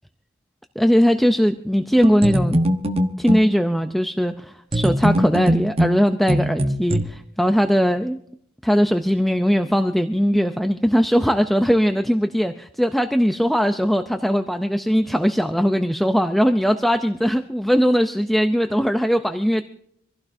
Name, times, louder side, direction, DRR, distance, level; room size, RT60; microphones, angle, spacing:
voice 1, 0.8-2.6 3.2-8.2 8.6-19.6, equal, ahead, 7 dB, 0.5 m, -20 dB
sound 1, 2.0-3.5 4.7-7.0, equal, 30° right, 1.1 m, -21 dB
25.5 x 16.0 x 2.7 m, 0.70 s
head